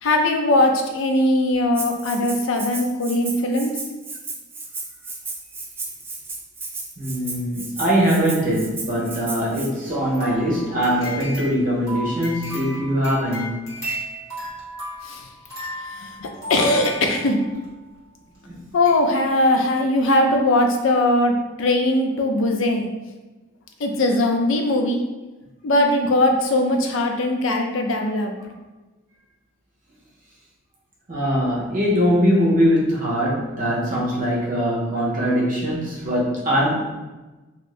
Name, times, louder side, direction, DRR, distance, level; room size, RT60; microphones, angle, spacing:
voice 1, 0.0-3.7 15.0-15.3 15.8-17.4 18.7-22.9 23.8-25.0 25.6-28.3, left 1 dB, 85° left, 3 dB, 0.5 m, -20 dB
Rattle (instrument), 1.7-9.7, right 3 dB, 10° right, 0.3 m, -34 dB
voice 2, 7.0-13.6 18.4-18.7 31.1-36.9, equal, 45° right, -5 dB, 0.9 m, -22 dB
sound 1, 9.9-17.7 18.3-18.4 18.8-19.0 19.4-19.5, equal, 15° left, 1.1 m, -34 dB
2.8 x 2.6 x 3.2 m, 1.1 s
head